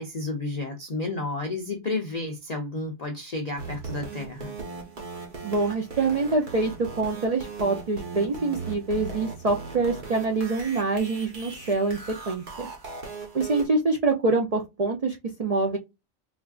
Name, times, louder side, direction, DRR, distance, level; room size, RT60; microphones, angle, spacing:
voice 1, 0.0-4.6, left 2 dB, 65° left, 0.4 m, -31 dB
sound 1, 3.6-13.7, right 4 dB, 40° right, 1.0 m, -38 dB
voice 2, 5.4-12.0 12.3-12.7 13.3-15.8, right 3 dB, 70° right, 0.3 m, -25 dB
4.0 x 2.3 x 2.3 m
omnidirectional pair, 1.4 m